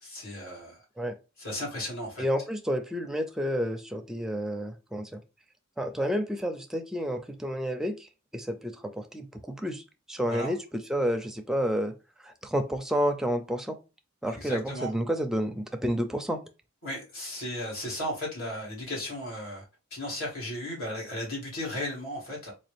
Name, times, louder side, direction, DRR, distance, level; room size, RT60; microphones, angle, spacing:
voice 1, 0.0-0.8 1.4-2.2 10.3-10.5 14.3-14.9 16.8-19.6 19.9-22.5, left 1 dB, 75° left, 2.3 m, -35 dB
voice 2, 2.2-5.2 5.8-9.8 10.1-11.9 12.2-13.8 14.2-16.4, equal, ahead, 0.4 m, -30 dB
4.0 x 2.4 x 3.3 m
head